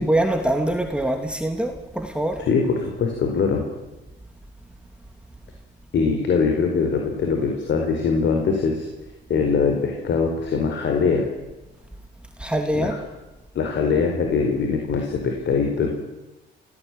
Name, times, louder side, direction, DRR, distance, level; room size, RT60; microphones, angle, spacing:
voice 1, 0.0-2.4 12.4-13.0, right 1 dB, 5° right, 4 dB, 2.8 m, -23 dB
voice 2, 2.4-3.7 5.9-8.9 9.3-11.3 12.7-13.0 13.5-15.9, left 5 dB, 65° left, 3 dB, 4.6 m, -22 dB
26.5 x 17.5 x 9.3 m, 1.1 s
cardioid pair, 90°, 20 cm